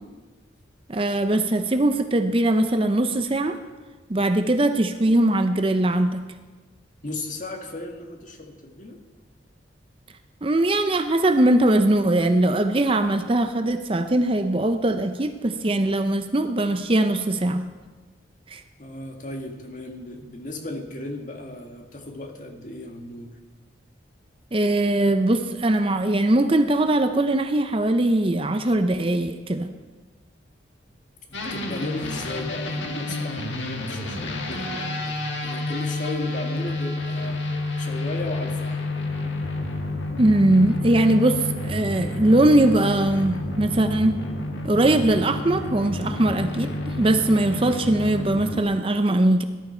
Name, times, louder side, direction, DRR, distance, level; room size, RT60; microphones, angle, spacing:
voice 1, 0.9-3.6 4.1-6.3 10.4-17.7 18.5-18.6 24.5-29.7 40.2-44.2 44.6-49.4, right 1 dB, 30° right, 8 dB, 0.6 m, -21 dB
voice 2, 7.0-9.0 18.8-23.4 31.3-37.4 37.8-38.8, left 1 dB, 40° left, 3 dB, 1.7 m, -35 dB
sound 1, 31.3-48.6, left 2 dB, 75° left, 1.6 m, -30 dB
19.0 x 11.5 x 4.4 m, 1.3 s
head